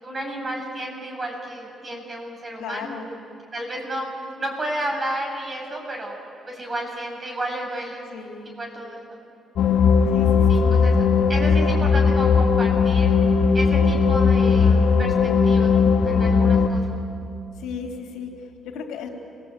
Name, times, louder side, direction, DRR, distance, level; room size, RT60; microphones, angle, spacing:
voice 1, 0.0-3.0 3.5-6.2 6.5-8.1 8.5-9.2 10.5-10.9 11.3-13.1 13.5-16.8, right 1 dB, 35° right, 0 dB, 7.5 m, -32 dB
voice 2, 2.6-3.1 8.1-8.5 10.1-10.8 14.6-14.8 17.6-19.1, left 6 dB, 90° left, 0 dB, 3.7 m, -35 dB
sound 1, 9.6-16.7, left 5 dB, 75° left, 1.9 m, -18 dB
29.0 x 20.0 x 9.1 m, 2.6 s
cardioid pair, 90°, 0 cm